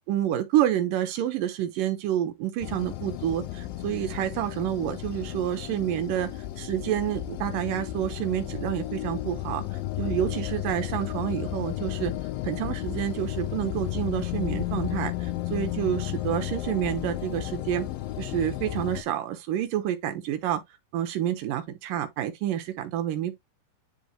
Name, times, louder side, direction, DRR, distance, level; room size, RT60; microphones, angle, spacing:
voice 1, 0.0-6.3 6.6-9.6 10.0-12.1 12.4-17.9 18.2-20.6 20.9-23.4, right 11 dB, 70° right, 2.2 m, -28 dB
sound 1, 2.6-19.0, left 14 dB, 85° left, 2.1 m, -33 dB
10.5 x 3.7 x 3.0 m
omnidirectional pair, 4.8 m